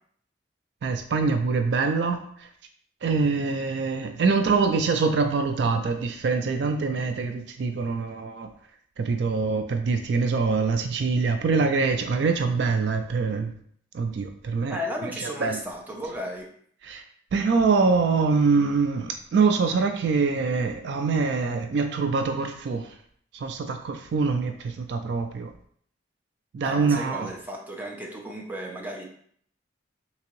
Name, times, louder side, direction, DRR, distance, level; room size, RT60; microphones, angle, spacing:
voice 1, 0.8-2.5 3.0-8.5 9.0-13.5 13.9-14.8 15.0-15.6 16.8-17.0 17.3-22.9 23.3-25.5 26.5-27.3, right 4 dB, 60° right, 6 dB, 0.3 m, -24 dB
voice 2, 14.7-16.5 26.6-29.0, equal, 10° right, -1 dB, 0.5 m, -34 dB
3.4 x 2.9 x 3.0 m, 0.62 s
head